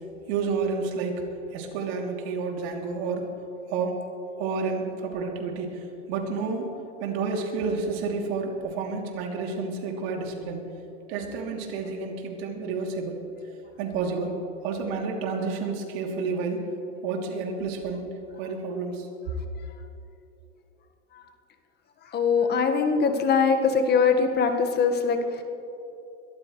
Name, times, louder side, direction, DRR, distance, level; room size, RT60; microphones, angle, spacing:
voice 1, 0.3-1.2 1.5-3.3 3.7-4.0 4.4-6.7 7.0-10.7 11.1-13.2 13.8-14.3 14.6-16.6 17.0-18.1 18.4-19.1, right 4 dB, 60° right, 1 dB, 3.0 m, -30 dB
voice 2, 22.0-25.4, left 5 dB, 30° left, 6 dB, 1.6 m, -22 dB
22.0 x 13.5 x 3.2 m, 2.9 s
hypercardioid pair, 120°, 35 cm